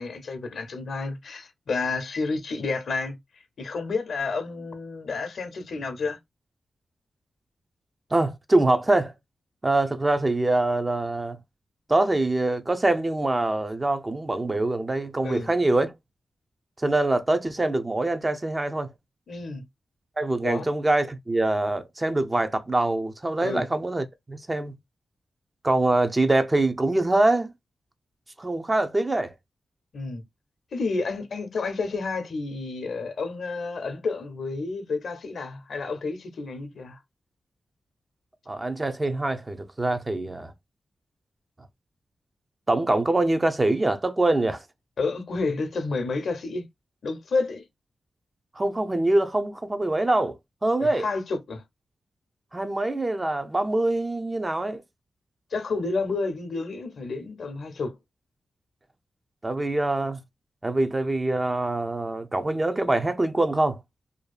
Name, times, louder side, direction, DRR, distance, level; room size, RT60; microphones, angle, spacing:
voice 1, 0.0-3.2 3.6-6.2 15.2-15.5 19.3-19.7 20.4-20.7 23.4-23.7 29.9-30.2 30.7-37.0 45.0-46.7 47.0-47.6 50.8-51.6 55.5-58.0, left 3 dB, 75° left, 0.6 m, -30 dB
voice 2, 8.1-9.1 9.6-11.4 11.9-15.9 16.8-18.9 20.2-24.8 25.6-27.5 28.4-29.3 38.5-40.5 42.7-44.6 48.6-51.1 52.5-54.8 59.4-60.2 60.6-63.8, right 2 dB, 30° right, 0.6 m, -24 dB
2.6 x 2.4 x 2.2 m
supercardioid pair, 40°, 0 cm